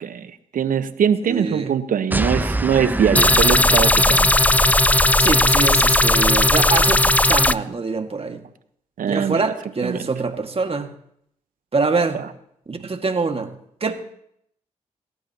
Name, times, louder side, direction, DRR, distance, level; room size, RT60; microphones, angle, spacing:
voice 1, 0.0-4.3 9.0-9.5 9.8-10.0 12.1-12.3, right 8 dB, 65° right, 12 dB, 1.1 m, -22 dB
voice 2, 1.3-1.7 5.2-8.4 9.0-10.9 11.7-12.2 12.7-13.6 13.8-13.9, right 4 dB, 40° right, 6 dB, 2.0 m, -24 dB
sound 1, 2.1-4.7, right 2 dB, 10° right, 0.8 m, -26 dB
sound 2, 3.2-7.5, left 2 dB, 10° left, 0.5 m, -16 dB
27.0 x 13.0 x 3.0 m, 0.71 s
hypercardioid pair, 40°, 15 cm